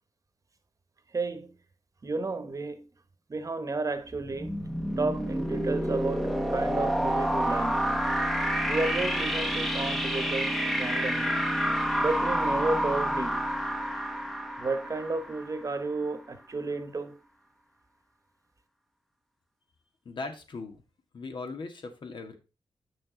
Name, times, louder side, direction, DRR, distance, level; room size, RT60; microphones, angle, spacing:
voice 1, 1.1-1.5 2.0-2.9 3.3-4.6 5.0-7.9 8.7-11.4 12.0-13.4 14.6-17.2, right 3 dB, 35° right, 1.3 m, -32 dB
sound 1, 4.1-15.8, equal, ahead, 1.1 m, -29 dB
voice 2, 20.1-20.8 21.1-22.3, left 3 dB, 60° left, 2.0 m, -39 dB
8.8 x 6.3 x 3.9 m
cardioid pair, 90°, 9 cm